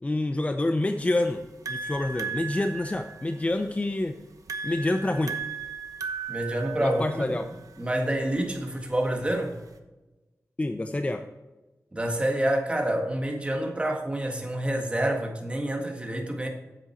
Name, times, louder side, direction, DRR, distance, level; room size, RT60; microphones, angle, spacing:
voice 1, 0.0-1.4 1.7-4.1 4.6-5.4 6.8-7.5 10.6-11.2, left 2 dB, 25° left, 6 dB, 0.6 m, -27 dB
sound 1, 1.0-9.8, right 5 dB, 75° right, 1.0 m, -38 dB
voice 2, 6.3-7.4 7.8-9.6 11.9-16.5, right 1 dB, 20° right, 2 dB, 1.8 m, -28 dB
9.2 x 7.7 x 4.4 m, 1.1 s
wide cardioid pair, 95°, 6 cm